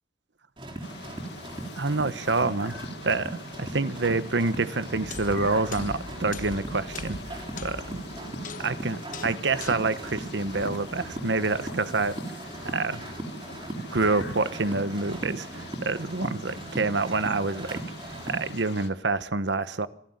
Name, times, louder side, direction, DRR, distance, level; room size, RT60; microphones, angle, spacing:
sound 1, 0.6-18.5, right 2 dB, 30° right, 3.8 m, -38 dB
sound 2, 0.8-18.9, left 3 dB, 70° left, 1.9 m, -44 dB
voice 1, 1.8-2.8 3.0-8.0 8.6-12.4 12.6-13.0 13.9-17.8 18.3-19.9, right 3 dB, 85° right, 1.1 m, -27 dB
sound 3, 5.0-11.2, left 3 dB, 45° left, 1.1 m, -42 dB
26.0 x 11.5 x 9.6 m
head